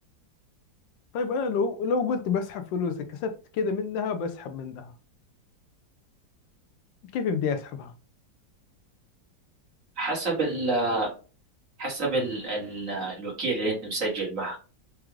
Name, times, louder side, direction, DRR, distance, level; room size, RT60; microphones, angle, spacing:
voice 1, 1.1-4.9 7.1-7.9, left 5 dB, 80° left, 1.3 m, -28 dB
voice 2, 10.0-11.1 11.8-14.6, right 2 dB, 45° right, 1.7 m, -28 dB
4.7 x 2.4 x 3.1 m
omnidirectional pair, 2.0 m